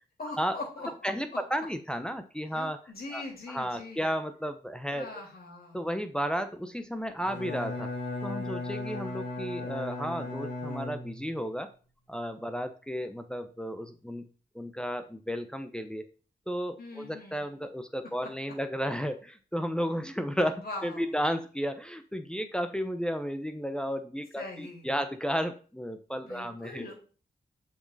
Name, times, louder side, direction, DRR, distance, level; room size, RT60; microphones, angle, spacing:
voice 1, 0.2-1.4 2.5-4.1 4.9-5.8 16.8-17.7 18.2-18.3 20.6-21.2 24.3-25.0 26.3-26.9, left 2 dB, 60° left, -1 dB, 3.4 m, -42 dB
voice 2, 1.0-2.8 3.1-3.2 3.5-5.1 5.7-7.9 8.2-11.7 12.1-14.3 14.5-16.0 16.5-26.9, equal, 5° left, 8 dB, 0.8 m, -33 dB
Bowed string instrument, 7.2-11.5, left 2 dB, 85° left, 2.6 m, -36 dB
6.8 x 5.1 x 4.1 m, 0.38 s
cardioid pair, 40°, 17 cm